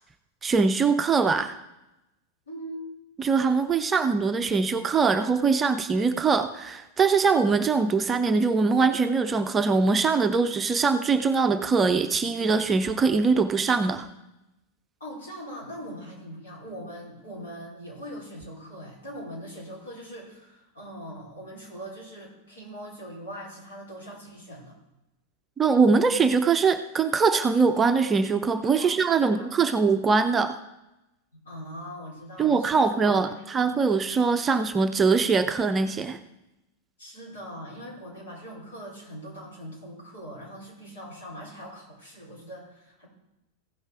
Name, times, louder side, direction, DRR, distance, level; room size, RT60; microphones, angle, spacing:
voice 1, 0.4-1.5 3.2-14.1 25.6-30.6 32.4-36.2, right 4 dB, 20° right, 8 dB, 0.6 m, -22 dB
voice 2, 2.5-2.9 15.0-24.7 28.8-29.5 31.3-33.5 37.0-43.1, equal, 65° left, -4 dB, 4.8 m, -41 dB
15.5 x 5.4 x 4.9 m, 0.91 s
figure-of-eight pair, 90°, 0 cm